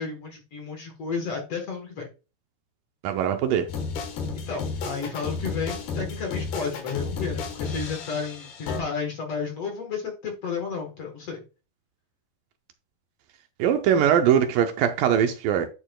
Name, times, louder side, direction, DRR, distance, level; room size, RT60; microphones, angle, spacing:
voice 1, 0.0-2.1 4.5-11.4, left 5 dB, 55° left, 2.0 m, -32 dB
voice 2, 3.0-3.7 13.6-15.7, right 9 dB, 75° right, 2.3 m, -21 dB
sound 1, 3.7-8.8, left 4 dB, 90° left, 3.5 m, -32 dB
10.5 x 6.6 x 2.3 m
omnidirectional pair, 4.2 m